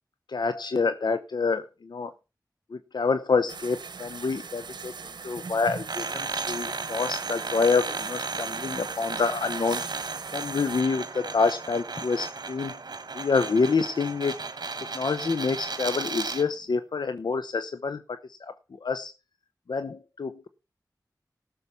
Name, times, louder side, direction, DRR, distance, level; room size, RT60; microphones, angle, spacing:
voice 1, 0.3-2.1 2.7-4.9 5.2-9.8 10.3-12.8 13.1-14.4 14.9-18.5 18.8-19.1 19.7-20.5, left 4 dB, 80° left, 10 dB, 0.8 m, -27 dB
sound 1, 3.5-10.8, right 5 dB, 90° right, 0.8 m, -40 dB
sound 2, 5.9-16.5, right 4 dB, 70° right, 1.2 m, -34 dB
14.0 x 6.8 x 5.6 m, 0.31 s
cardioid pair, 40°, 7 cm